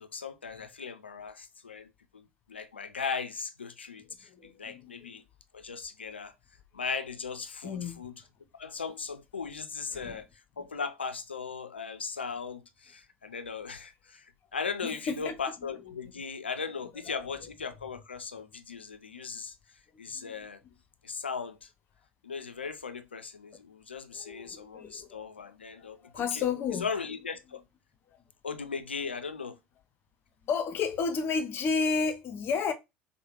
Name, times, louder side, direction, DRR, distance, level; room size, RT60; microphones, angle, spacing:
voice 1, 0.0-1.9 2.1-5.2 5.5-6.3 6.7-8.1 8.6-10.3 10.6-19.5 20.0-20.6 21.0-21.7 22.2-26.4 26.8-27.6 28.4-29.6, left 5 dB, 90° left, 0.3 m, -38 dB
voice 2, 4.3-5.2 7.6-8.1 9.9-10.2 14.8-15.4 15.9-16.0 17.0-17.1 20.1-20.4 20.6-20.7 24.1-25.2 25.8-26.9 30.4-32.7, left 5 dB, 40° left, 0.6 m, -32 dB
4.6 x 2.1 x 2.9 m
figure-of-eight pair, 70°, 6 cm